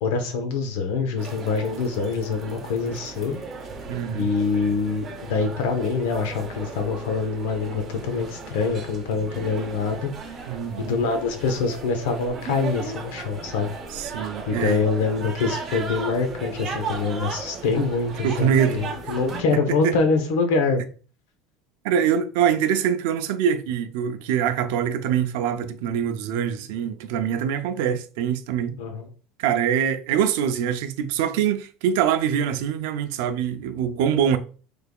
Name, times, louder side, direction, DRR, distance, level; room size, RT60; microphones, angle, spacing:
voice 1, 0.0-3.4 4.1-10.1 10.8-13.7 14.5-20.8 28.8-29.1, left 4 dB, 85° left, 0.8 m, -25 dB
sound 1, 1.2-19.4, right 4 dB, 25° right, 0.6 m, -36 dB
voice 2, 3.9-4.3 10.5-11.0 13.9-14.8 18.2-19.1 19.5-20.0 21.8-28.7 29.4-34.4, right 8 dB, 70° right, 0.4 m, -24 dB
3.6 x 3.3 x 2.3 m
cardioid pair, 170°, 0 cm